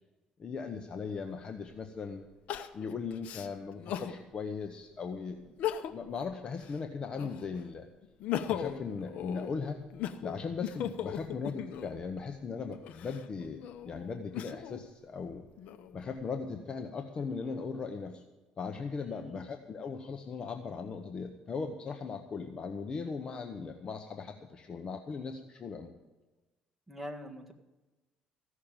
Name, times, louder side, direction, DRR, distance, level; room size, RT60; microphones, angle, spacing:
voice 1, 0.4-2.3 2.7-5.6 5.9-7.9 8.5-9.8 10.2-15.4 15.9-18.2 18.6-25.9, left 5 dB, 40° left, 5 dB, 1.0 m, -38 dB
Crying sobbing, 1.1-1.2 2.5-4.2 4.7-4.8 5.4-6.1 6.5-7.6 8.0-12.0 12.7-14.8 15.4-16.2, left 10 dB, 70° left, 0.8 m, -38 dB
voice 2, 19.0-19.4 26.9-27.5, equal, 5° right, 2 dB, 1.7 m, -44 dB
15.5 x 6.5 x 8.9 m, 1.1 s
cardioid pair, 110°, 2 cm